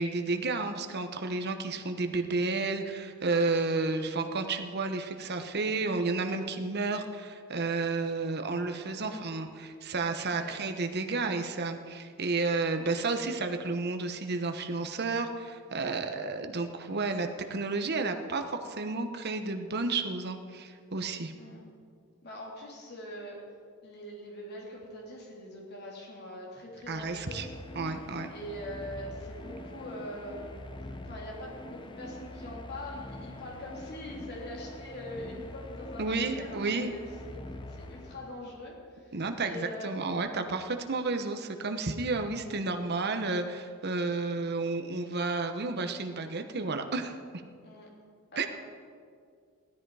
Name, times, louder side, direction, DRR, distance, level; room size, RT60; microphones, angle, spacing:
voice 1, 0.0-21.3 26.9-27.5 27.7-28.3 36.0-36.9 39.1-47.2 48.4-48.5, right 3 dB, 50° right, 6 dB, 1.1 m, -31 dB
voice 2, 22.2-23.4 23.8-27.5 28.3-30.6 31.0-37.4 37.7-39.1 39.4-40.2 47.6-47.9 48.3-48.5, left 1 dB, 50° left, -2 dB, 3.2 m, -43 dB
sound 1, 26.8-38.6, left 1 dB, 20° left, 0.8 m, -44 dB
17.0 x 13.0 x 4.9 m, 2.2 s
head